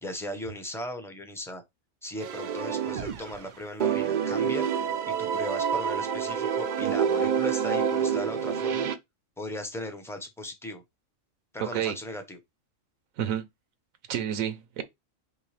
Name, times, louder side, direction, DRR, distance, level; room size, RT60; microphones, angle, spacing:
voice 1, 0.0-1.6 2.0-8.9 9.4-10.8 11.5-12.4, left 1 dB, 5° left, 0.6 m, -38 dB
sound 1, 2.2-3.5 3.8-8.9, right 7 dB, 65° right, 0.4 m, -27 dB
voice 2, 11.6-12.0 13.2-13.5 14.1-14.8, right 9 dB, 80° right, 1.1 m, -29 dB
4.7 x 3.2 x 3.3 m
omnidirectional pair, 1.4 m